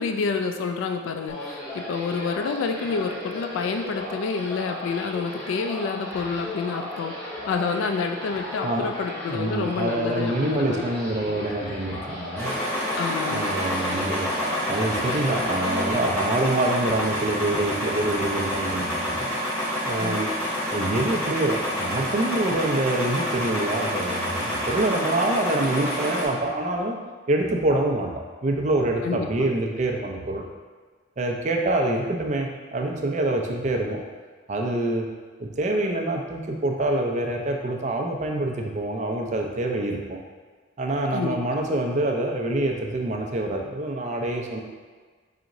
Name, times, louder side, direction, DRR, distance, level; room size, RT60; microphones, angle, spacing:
voice 1, 0.0-7.2 7.5-10.8 11.2-11.4 13.0-13.6 20.0-20.2 29.0-29.5 41.1-41.4, left 5 dB, 75° left, 6 dB, 0.3 m, -28 dB
sound 1, 1.3-15.9, left 1 dB, 25° left, 1.0 m, -35 dB
voice 2, 9.3-12.5 13.3-14.3 14.7-19.3 19.9-20.3 20.7-27.0 27.3-28.1 28.4-30.5 31.2-34.0 34.5-35.1 35.4-40.2 40.8-44.6, right 2 dB, 35° right, 1 dB, 0.4 m, -26 dB
sound 2, 12.4-26.3, equal, 5° left, 1.2 m, -28 dB
4.9 x 2.9 x 2.5 m, 1.5 s
head